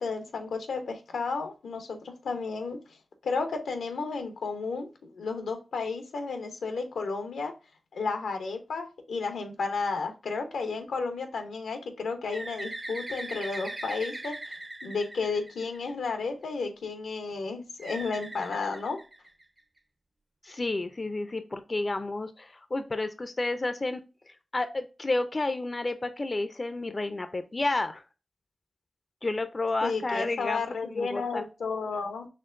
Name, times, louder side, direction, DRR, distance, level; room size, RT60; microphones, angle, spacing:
voice 1, 0.0-2.8 3.2-4.9 5.1-7.5 7.9-14.5 14.8-19.0 29.8-32.3, left 4 dB, 90° left, 7 dB, 0.6 m, -32 dB
Bird, 12.3-16.1 17.8-19.6, right 1 dB, 30° right, 0.7 m, -40 dB
voice 2, 20.4-24.0 24.3-28.0 29.2-31.4, left 2 dB, 40° left, 10 dB, 0.4 m, -31 dB
4.4 x 2.9 x 2.4 m, 0.31 s
cardioid pair, 40°, 0 cm